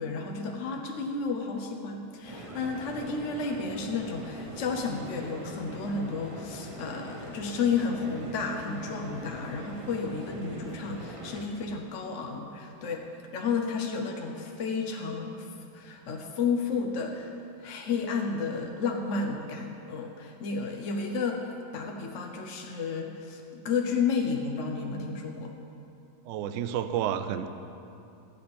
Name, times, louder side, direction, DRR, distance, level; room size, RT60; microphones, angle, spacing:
voice 1, 0.0-13.1 13.3-21.4 21.7-25.5, left 5 dB, 55° left, 1 dB, 1.0 m, -32 dB
sound 1, 2.2-11.5, right 1 dB, 25° right, 0.8 m, -42 dB
voice 2, 26.3-27.5, right 10 dB, 70° right, 10 dB, 0.8 m, -30 dB
12.5 x 5.1 x 8.5 m, 2.7 s
omnidirectional pair, 1.8 m